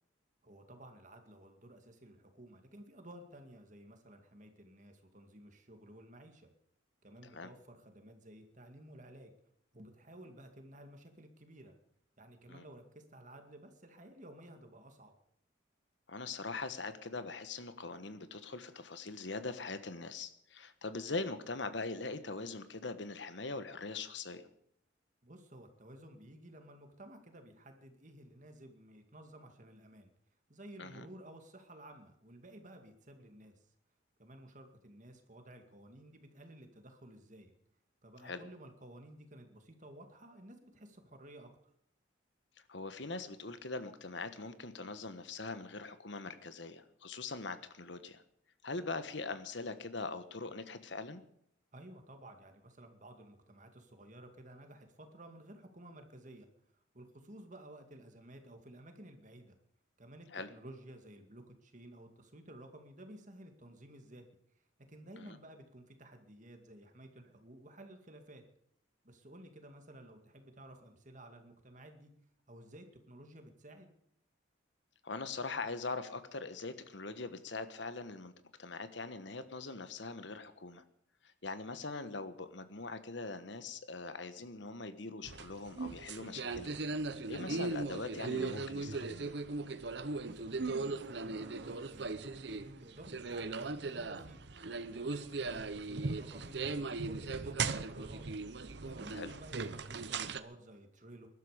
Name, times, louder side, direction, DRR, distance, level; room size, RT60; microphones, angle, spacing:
voice 1, 0.4-6.5 7.0-9.3 9.7-11.7 12.2-15.1 25.2-30.1 30.5-33.5 34.2-37.5 38.0-41.5 51.7-56.5 56.9-59.6 60.0-64.3 64.9-68.4 69.0-72.1 72.5-73.9 90.2-94.4 94.8-98.2 98.8-101.3, right 1 dB, 40° right, 5 dB, 2.2 m, -54 dB
voice 2, 16.1-24.5 30.8-31.1 38.2-38.4 42.7-48.2 48.6-51.2 60.3-60.5 65.2-65.4 75.0-78.3 78.6-80.8 81.2-86.8 87.1-89.4 99.1-99.3, left 3 dB, 65° left, 11 dB, 1.3 m, -42 dB
sound 1, 85.2-100.4, right 3 dB, 60° right, 0.8 m, -38 dB
21.0 x 12.0 x 5.1 m, 0.72 s
head